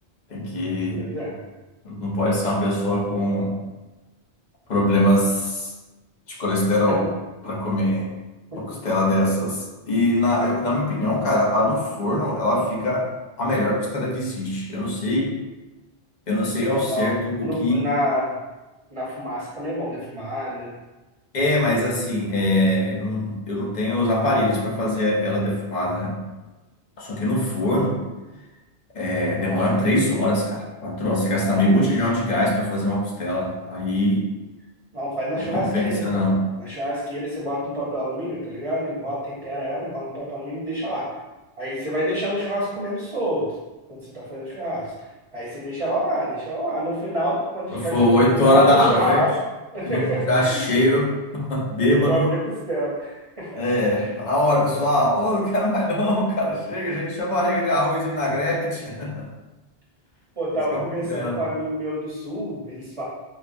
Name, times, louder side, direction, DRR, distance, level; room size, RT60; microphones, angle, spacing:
voice 1, 0.3-1.1 1.8-3.5 4.7-5.7 6.3-7.1 7.4-8.1 8.5-13.1 13.4-15.3 16.3-17.8 21.3-26.2 27.0-28.0 28.9-34.3 35.4-36.4 47.7-49.2 49.9-52.3 53.5-59.3 60.7-60.8 61.1-61.4, left 1 dB, 45° left, -2 dB, 0.8 m, -22 dB
voice 2, 1.0-1.4 8.5-8.8 16.9-17.1 17.4-18.4 18.9-20.7 29.4-29.6 31.3-31.9 34.9-36.3 36.6-41.1 41.6-43.5 43.9-44.9 45.3-49.4 49.7-50.6 51.8-53.6 53.9-54.1 54.5-54.9 60.4-63.0, equal, 35° right, -7 dB, 0.8 m, -27 dB
4.9 x 2.2 x 2.5 m, 1.1 s
omnidirectional pair, 1.1 m